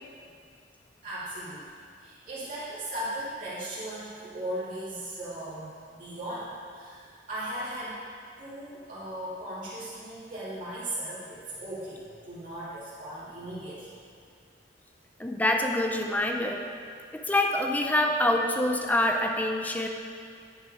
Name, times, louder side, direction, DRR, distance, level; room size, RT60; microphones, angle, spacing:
voice 1, 1.0-1.7 2.0-8.0 8.4-13.9, right 1 dB, 45° right, -11 dB, 2.6 m, -37 dB
voice 2, 15.2-16.7 17.1-19.9, left 1 dB, 10° left, 2 dB, 0.6 m, -26 dB
10.5 x 6.6 x 4.9 m, 2.2 s
head